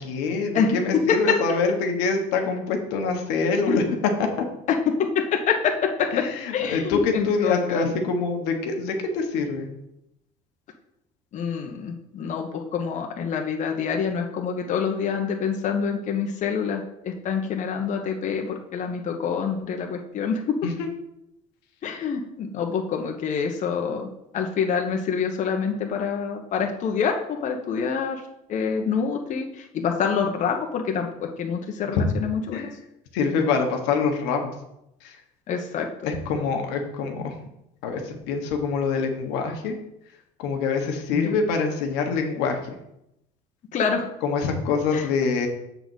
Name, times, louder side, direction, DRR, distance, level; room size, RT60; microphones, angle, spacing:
voice 1, 0.0-3.8 4.2-4.3 6.1-9.7 20.6-20.9 31.9-32.0 32.5-32.7 33.1-34.5 35.0-35.2 36.0-37.4 37.8-39.8 40.4-42.8 44.2-45.5, left 4 dB, 80° left, 3 dB, 1.3 m, -25 dB
voice 2, 4.7-6.2 6.5-7.8 11.3-20.5 21.8-28.2 28.5-32.7 35.5-35.9 41.1-41.4 43.7-44.1 44.9-45.1, left 6 dB, 45° left, 2 dB, 1.0 m, -26 dB
6.9 x 4.0 x 6.3 m, 0.84 s
supercardioid pair, 95°, 17 cm